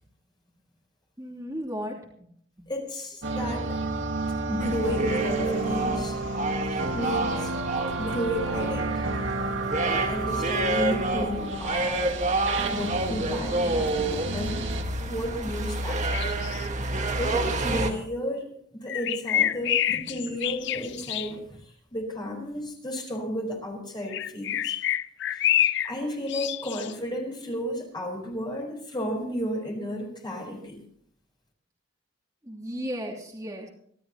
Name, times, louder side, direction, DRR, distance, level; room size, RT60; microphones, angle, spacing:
voice 1, 1.2-2.3 2.6-2.7 19.9-20.4 32.4-33.7, equal, 15° right, -4 dB, 3.0 m, -36 dB
voice 2, 2.7-3.8 4.5-6.2 6.7-7.5 8.0-9.3 9.9-12.2 12.6-16.3 17.2-18.4 18.7-21.4 21.9-24.7 25.8-30.8, equal, 25° left, 1 dB, 4.6 m, -33 dB
sound 1, 3.2-14.8, right 2 dB, 90° right, 1.9 m, -31 dB
sound 2, 4.6-17.9, right 2 dB, 40° right, 1.7 m, -29 dB
sound 3, 16.1-16.7 18.9-21.3 24.1-25.9 26.3-26.9, left 11 dB, 65° left, 0.5 m, -27 dB
26.5 x 12.5 x 3.0 m, 0.65 s
head